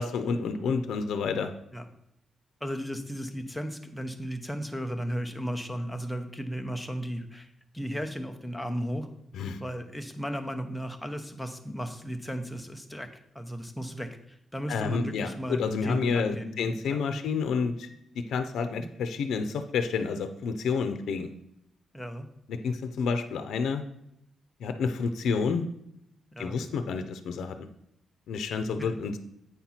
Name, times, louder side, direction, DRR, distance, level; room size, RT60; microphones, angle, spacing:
voice 1, 0.0-1.5 9.3-9.6 14.7-17.9 18.2-21.3 22.5-23.8 24.6-25.7 26.4-27.6 28.3-29.2, left 5 dB, 90° left, 8 dB, 0.6 m, -29 dB
voice 2, 2.6-9.1 9.6-13.1 13.3-17.2 18.7-18.9 21.9-22.3 26.3-26.6 28.8-28.9, equal, ahead, 4 dB, 0.8 m, -35 dB
8.2 x 4.4 x 5.7 m, 0.76 s
cardioid pair, 135°, 0 cm